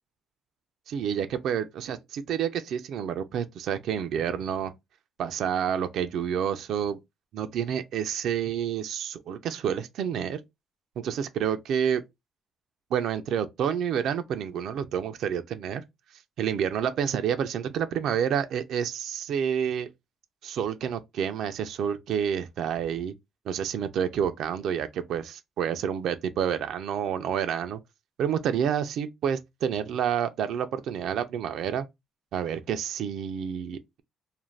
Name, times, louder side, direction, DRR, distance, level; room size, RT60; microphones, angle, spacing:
voice 1, 0.9-4.7 5.2-7.0 7.3-10.4 11.0-12.0 12.9-15.8 16.4-19.9 20.4-23.1 23.5-27.8 28.2-31.9 32.3-34.0, right 8 dB, 75° right, 0.3 m, -29 dB
2.4 x 2.1 x 3.1 m
cardioid pair, 90°, 0 cm